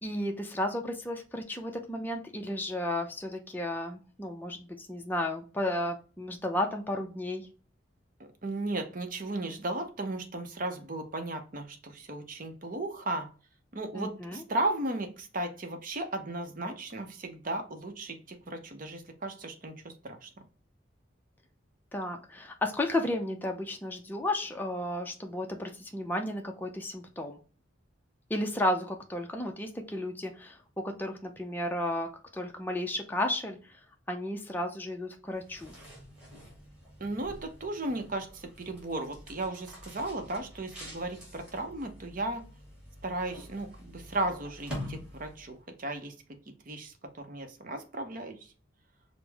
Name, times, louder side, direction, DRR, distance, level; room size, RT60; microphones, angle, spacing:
voice 1, 0.0-7.5 13.9-14.4 21.9-27.4 28.3-30.6 30.8-33.8 34.1-35.8, left 1 dB, 10° left, 2 dB, 0.4 m, -33 dB
voice 2, 8.4-13.3 13.7-20.3 37.0-42.4 43.0-46.1 46.7-48.5, right 2 dB, 45° right, 6 dB, 0.7 m, -35 dB
sound 1, 35.3-45.6, equal, 5° right, 1.9 m, -46 dB
5.2 x 2.0 x 3.3 m, 0.37 s
head